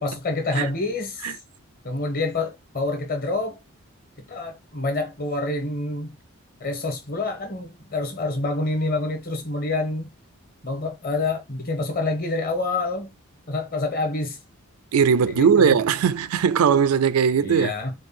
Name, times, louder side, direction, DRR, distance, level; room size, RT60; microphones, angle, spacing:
voice 1, 0.0-1.4 1.8-3.6 4.3-6.1 6.6-10.1 10.6-13.1 13.5-14.4 15.3-15.8 17.4-17.9, left 2 dB, 40° left, 1.5 m, -27 dB
voice 2, 14.9-17.7, right 7 dB, 85° right, 0.4 m, -19 dB
4.6 x 2.4 x 4.3 m
head